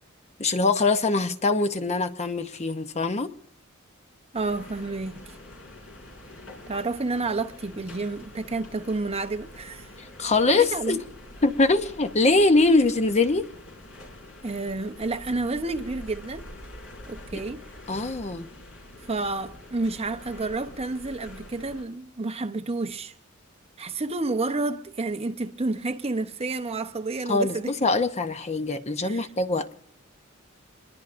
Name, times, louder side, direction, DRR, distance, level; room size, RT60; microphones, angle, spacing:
voice 1, 0.4-3.3 10.0-11.0 11.4-13.5 17.3-17.4 17.9-18.5 27.3-29.7, left 3 dB, 30° left, 0.8 m, -23 dB
sound 1, 4.3-21.8, left 1 dB, 70° left, 5.6 m, -45 dB
voice 2, 4.3-5.3 6.7-9.9 10.5-11.0 14.4-16.5 17.1-17.6 19.1-23.1 23.8-27.7 29.0-29.3, right 3 dB, 30° right, 0.8 m, -30 dB
26.5 x 21.5 x 2.5 m
head